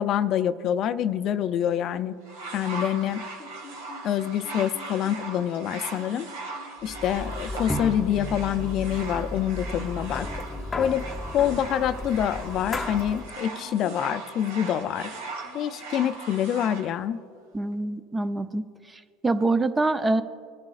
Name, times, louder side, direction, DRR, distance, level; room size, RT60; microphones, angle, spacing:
voice 1, 0.0-2.1 2.5-3.2 4.0-6.3 6.8-10.4 10.8-11.0 11.3-15.1 15.5-17.2, left 10 dB, 50° left, 12 dB, 0.4 m, -26 dB
sound 1, 2.2-16.8 17.7-17.8, right 2 dB, 90° right, 2.0 m, -39 dB
sound 2, 6.8-13.3, left 1 dB, 15° left, 0.7 m, -34 dB
voice 2, 17.5-18.7 18.9-20.2, right 2 dB, 15° right, 11 dB, 0.5 m, -25 dB
21.5 x 10.5 x 2.4 m, 2.2 s
supercardioid pair, 100°, 0 cm